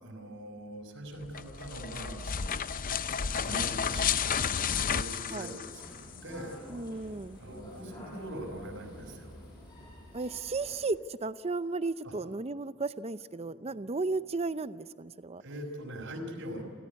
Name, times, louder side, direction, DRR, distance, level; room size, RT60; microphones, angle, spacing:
voice 1, 0.0-2.7 3.3-6.6 7.4-9.4 12.0-12.1 15.4-16.6, right 1 dB, 65° right, 0 dB, 4.9 m, -42 dB
sound 1, 1.2-6.2, left 7 dB, 40° left, 0.6 m, -32 dB
sound 2, 5.7-10.9, left 1 dB, 20° left, 6.6 m, -49 dB
voice 2, 6.7-7.4 10.1-15.4, right 3 dB, 30° right, 14 dB, 0.6 m, -34 dB
29.0 x 14.5 x 9.5 m, 2.1 s
head